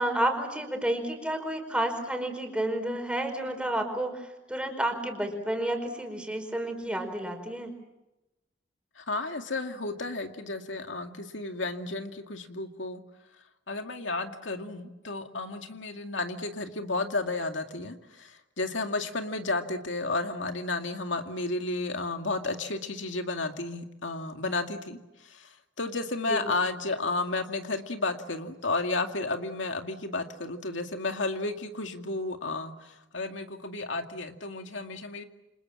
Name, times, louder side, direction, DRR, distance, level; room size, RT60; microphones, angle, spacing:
voice 1, 0.0-7.7 26.3-26.6, right 1 dB, 5° right, 4 dB, 5.0 m, -30 dB
voice 2, 9.0-13.0 13.7-25.0 25.2-25.5 25.8-35.2, left 3 dB, 85° left, 5 dB, 2.3 m, -32 dB
29.0 x 27.0 x 7.5 m, 0.98 s
head